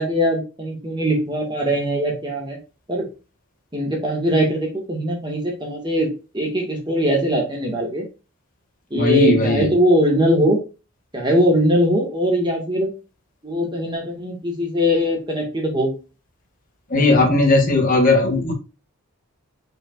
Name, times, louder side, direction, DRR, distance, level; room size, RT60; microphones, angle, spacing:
voice 1, 0.0-2.6 2.9-3.1 3.7-6.1 6.3-8.0 8.9-10.6 11.1-12.9 13.4-15.9, equal, 20° right, -1 dB, 2.1 m, -21 dB
voice 2, 8.9-9.7 16.9-18.5, left 2 dB, 35° left, 1 dB, 1.6 m, -17 dB
7.4 x 5.1 x 2.6 m, 0.31 s
head